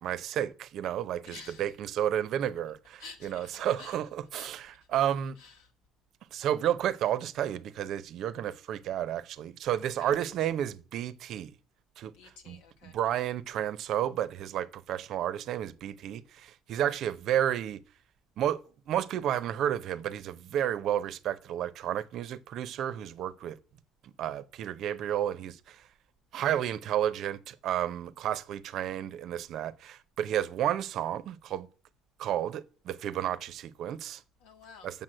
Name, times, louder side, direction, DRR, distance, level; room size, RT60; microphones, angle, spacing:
voice 1, 0.0-5.4 6.3-11.5 12.0-12.1 12.5-17.8 18.4-23.6 24.0-25.8 26.3-31.7 32.2-34.2 34.8-35.0, right 11 dB, 65° right, 0.7 m, -31 dB
voice 2, 1.2-1.7 3.0-4.0 4.3-4.5 5.4-5.7 10.0-10.1 12.1-13.0 16.9-17.0 34.4-34.9, left 4 dB, 85° left, 1.9 m, -50 dB
7.2 x 6.2 x 7.6 m
cardioid pair, 100°, 0 cm